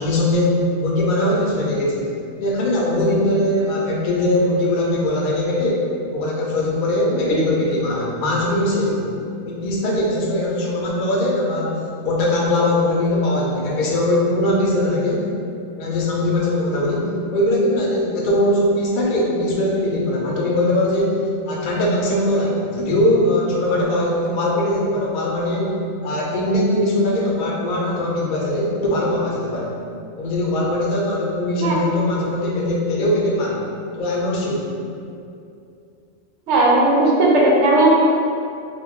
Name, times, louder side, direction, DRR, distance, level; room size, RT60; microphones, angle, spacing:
voice 1, 0.0-2.1 2.4-9.1 9.4-15.3 15.8-21.2 21.5-29.8 30.1-33.7 34.0-34.7, left 1 dB, 55° left, -4 dB, 0.7 m, -21 dB
voice 2, 36.5-37.9, right 2 dB, 90° right, -4 dB, 0.9 m, -15 dB
2.4 x 2.2 x 3.5 m, 2.5 s
omnidirectional pair, 1.1 m